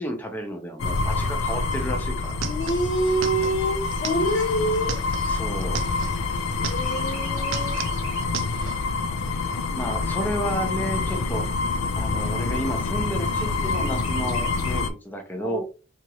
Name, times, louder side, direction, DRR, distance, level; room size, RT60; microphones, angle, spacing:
voice 1, 0.0-2.4 5.2-5.8 9.4-11.7 12.0-15.6, equal, 10° left, 4 dB, 0.5 m, -32 dB
sound 1, 0.8-14.9, left 3 dB, 85° left, 0.4 m, -27 dB
sound 2, 1.7-6.2 6.5-7.1 7.4-8.8, right 7 dB, 75° right, 0.4 m, -35 dB
voice 2, 2.4-5.0 6.6-7.8 15.4-15.6, right 1 dB, 70° left, 0 dB, 1.1 m, -26 dB
Chirp tweet, 2.6-6.4 6.8-8.4 8.9-9.0 9.3-10.3 10.9-11.0 11.3-11.4 11.9-12.4 13.7-14.7, right 2 dB, 10° right, 1.1 m, -44 dB
2.8 x 2.4 x 2.8 m, 0.34 s
head